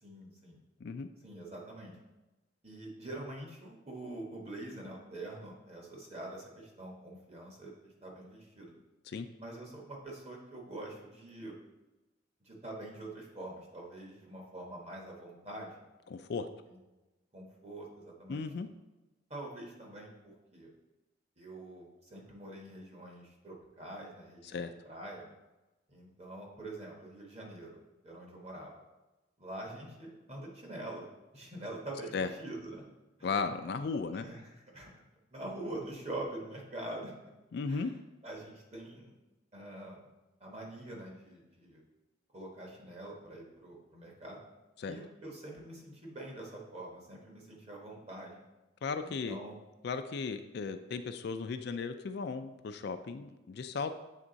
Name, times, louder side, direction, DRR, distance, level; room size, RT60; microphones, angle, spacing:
voice 1, 0.0-0.6 1.2-1.9 2.6-8.7 9.4-11.5 12.4-15.8 16.7-16.8 17.3-18.5 19.3-20.7 21.4-24.6 24.9-25.3 25.9-27.8 28.0-28.7 29.4-31.1 31.3-32.8 33.2-33.3 34.1-34.9 35.3-37.1 37.7-37.8 38.2-39.1 39.5-40.0 40.4-41.8 42.3-44.4 44.9-48.4 49.0-49.5, right 1 dB, 35° right, -1 dB, 1.2 m, -45 dB
voice 2, 16.1-16.5 18.3-18.7 24.4-24.7 32.1-32.3 33.2-34.3 37.5-37.9 44.8-45.0 48.8-49.4 49.8-54.0, left 4 dB, 55° left, 9 dB, 0.3 m, -36 dB
7.4 x 3.5 x 3.9 m, 1.1 s
head